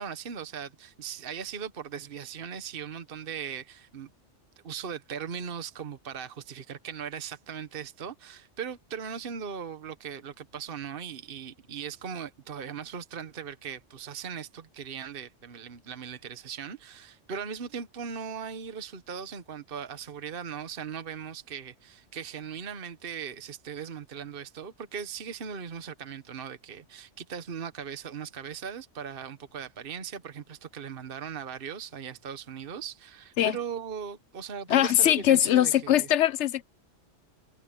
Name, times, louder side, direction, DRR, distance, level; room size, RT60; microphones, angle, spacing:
voice 1, 0.0-4.1 4.6-36.1, right 7 dB, 50° right, 1.3 m, -39 dB
voice 2, 34.7-36.6, left 12 dB, 70° left, 1.0 m, -22 dB
omnidirectional pair, 1.3 m